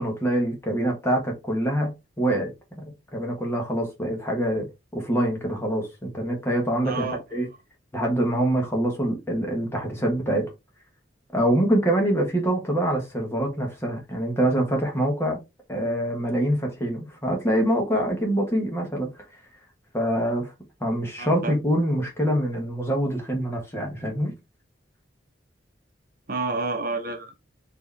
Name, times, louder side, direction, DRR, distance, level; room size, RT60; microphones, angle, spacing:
voice 1, 0.0-2.5 3.1-4.7 4.9-7.5 7.9-10.5 11.3-15.4 15.7-19.1 19.9-20.5 20.8-24.3, right 1 dB, 15° left, 1.3 m, -25 dB
voice 2, 6.8-7.2 21.2-21.5 26.3-27.4, right 3 dB, 50° right, 0.9 m, -29 dB
4.5 x 2.9 x 3.4 m
head